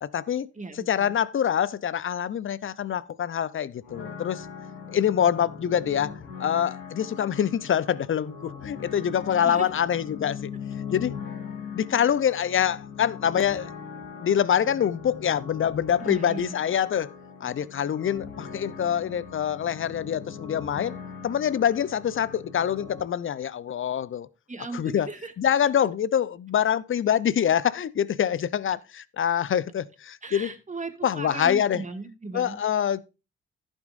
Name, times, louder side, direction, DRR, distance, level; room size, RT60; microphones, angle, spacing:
voice 1, 0.0-0.5 0.9-4.5 4.9-6.1 6.4-10.5 10.9-11.1 11.7-13.7 14.2-17.1 17.4-21.0 21.2-24.3 24.7-25.1 25.4-30.5 31.0-31.8 32.3-33.0, left 9 dB, 45° left, 0.7 m, -25 dB
voice 2, 0.5-1.2 9.4-9.7 16.0-16.6 24.5-25.3 30.2-32.6, right 3 dB, 25° right, 2.0 m, -37 dB
sound 1, 3.8-23.0, left 6 dB, 80° left, 2.8 m, -40 dB
15.0 x 6.3 x 2.6 m
hypercardioid pair, 40°, 29 cm